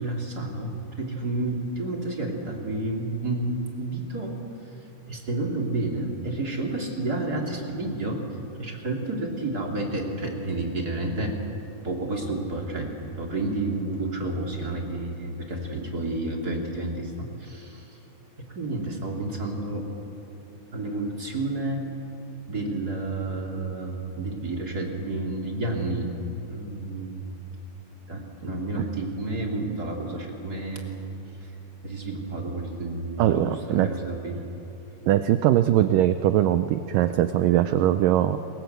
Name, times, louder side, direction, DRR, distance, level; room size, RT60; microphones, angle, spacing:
voice 1, 0.0-4.4 5.1-8.2 8.6-11.3 11.8-12.9 13.2-18.0 18.4-19.9 20.7-21.8 22.5-26.1 26.5-27.3 28.1-31.1 31.4-31.5 31.8-34.4, right 2 dB, 25° right, 0 dB, 2.7 m, -30 dB
voice 2, 33.2-33.9 35.1-38.4, right 12 dB, 90° right, 10 dB, 1.9 m, -21 dB
28.5 x 21.5 x 8.1 m, 2.9 s
omnidirectional pair, 4.7 m